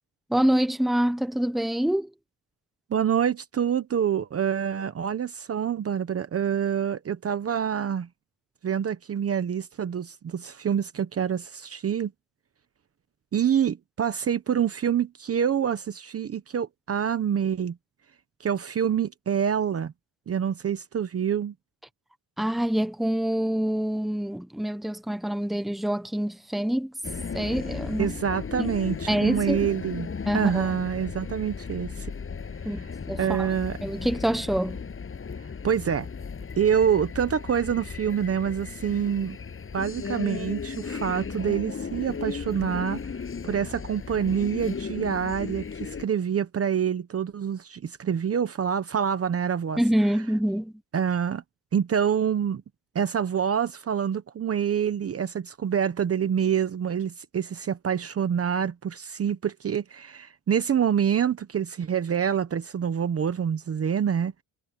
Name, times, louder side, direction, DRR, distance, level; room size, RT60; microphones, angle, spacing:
voice 1, 0.3-2.1 22.4-26.9 27.3-28.1 28.6-28.7 29.1-29.7 30.3-30.7 32.6-33.5 33.8-34.8 49.8-50.7, right 1 dB, ahead, 1.1 m, -26 dB
voice 2, 2.9-8.1 8.6-12.1 13.3-17.8 18.4-19.9 20.3-21.5 28.0-30.1 30.3-32.1 33.2-33.8 35.6-36.1 36.6-39.4 39.7-43.0 43.4-49.8 50.9-51.4 51.7-52.6 52.9-64.4, right 8 dB, 35° right, 0.9 m, -26 dB
sound 1, 27.0-46.1, left 5 dB, 30° left, 7.7 m, -35 dB
cardioid pair, 145°, 43 cm